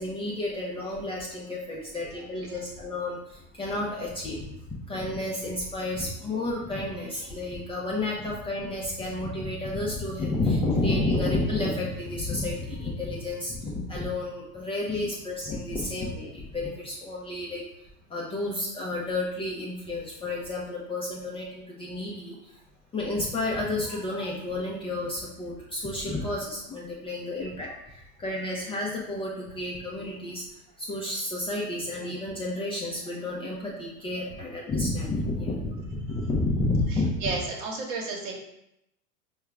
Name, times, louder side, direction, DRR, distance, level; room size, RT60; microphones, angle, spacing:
voice 1, 0.0-4.4 4.9-17.6 18.1-22.5 22.9-30.4 30.8-37.2, left 2 dB, 10° left, -4 dB, 0.5 m, -31 dB
voice 2, 36.9-38.3, right 3 dB, 55° right, 0 dB, 1.1 m, -33 dB
4.6 x 2.3 x 3.3 m, 0.82 s
hypercardioid pair, 95°, 46 cm